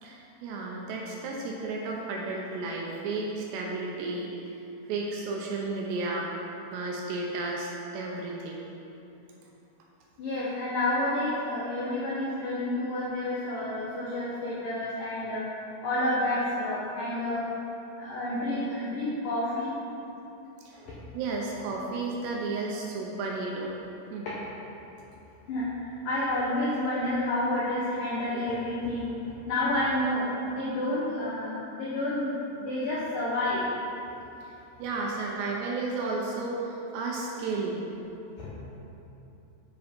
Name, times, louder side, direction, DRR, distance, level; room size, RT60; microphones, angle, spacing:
voice 1, 0.0-4.3 4.9-6.3 6.7-8.6 20.6-20.8 21.1-23.8 24.1-24.3 34.4-34.5 34.8-37.9, right 3 dB, 80° right, -2 dB, 2.5 m, -33 dB
voice 2, 10.2-15.5 15.8-17.5 18.0-19.7 20.8-21.0 25.5-32.3 32.6-33.7 38.4-38.5, left 1 dB, 90° left, -7 dB, 1.8 m, -29 dB
9.4 x 5.4 x 5.2 m, 3.0 s
omnidirectional pair, 5.6 m